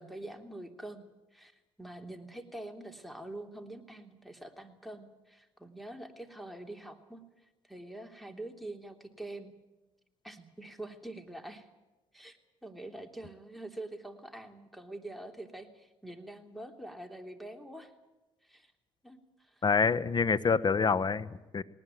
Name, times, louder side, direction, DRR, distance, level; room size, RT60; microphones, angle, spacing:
voice 1, 0.0-1.5 1.8-7.2 7.7-9.5 10.2-11.7 12.1-12.4 12.6-17.9 18.4-18.7 19.0-19.6, right 1 dB, ahead, 6 dB, 3.3 m, -45 dB
voice 2, 19.6-21.6, left 5 dB, 35° left, 16 dB, 1.1 m, -27 dB
19.5 x 19.5 x 9.3 m, 1.0 s
supercardioid pair, 80°, 12 cm